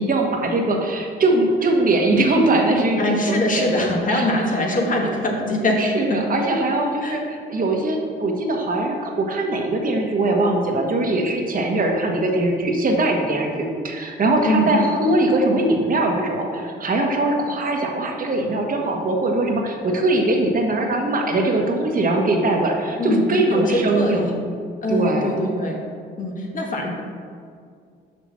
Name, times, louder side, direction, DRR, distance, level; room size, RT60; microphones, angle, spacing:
voice 1, 0.0-4.3 5.8-24.4 24.9-25.3, right 2 dB, 45° right, 1 dB, 1.3 m, -21 dB
voice 2, 3.0-5.8 6.1-6.2 7.0-7.2 14.4-14.7 23.0-24.3 24.8-25.8 26.2-26.9, left 1 dB, 40° left, 0 dB, 1.6 m, -22 dB
6.2 x 5.9 x 6.0 m, 2.2 s
cardioid pair, 90°, 20 cm